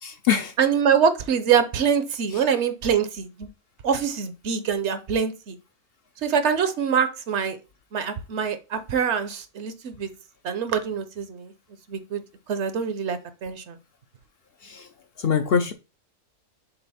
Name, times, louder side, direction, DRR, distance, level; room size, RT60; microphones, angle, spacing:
voice 1, 0.0-0.5 14.6-14.9 15.2-15.7, left 7 dB, 60° left, 0.7 m, -23 dB
voice 2, 0.6-3.5 3.8-5.6 6.2-7.6 7.9-10.1 10.4-11.5 11.9-12.2 12.5-13.8, right 7 dB, 65° right, 0.9 m, -24 dB
6.8 x 2.5 x 5.6 m
omnidirectional pair, 1.3 m